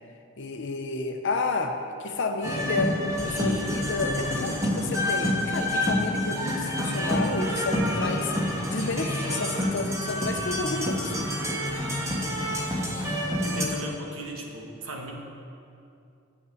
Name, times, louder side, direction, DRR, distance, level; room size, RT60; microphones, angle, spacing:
voice 1, 0.4-3.0 3.2-11.3, left 3 dB, 60° left, 5 dB, 0.8 m, -31 dB
sound 1, 2.4-13.6, left 1 dB, 15° right, 1.5 m, -28 dB
voice 2, 13.4-15.1, right 1 dB, 80° right, 1 dB, 1.4 m, -36 dB
8.2 x 6.9 x 7.3 m, 2.6 s
head